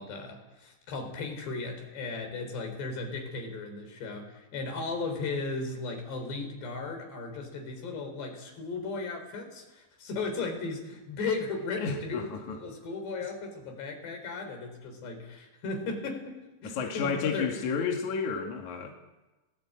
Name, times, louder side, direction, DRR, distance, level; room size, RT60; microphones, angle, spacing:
voice 1, 0.0-12.3 12.6-17.6, left 3 dB, 75° left, 4 dB, 6.4 m, -36 dB
voice 2, 11.8-12.6 16.6-18.9, left 5 dB, 50° left, 2 dB, 2.9 m, -31 dB
22.0 x 18.5 x 8.8 m, 1.1 s
omnidirectional pair, 4.9 m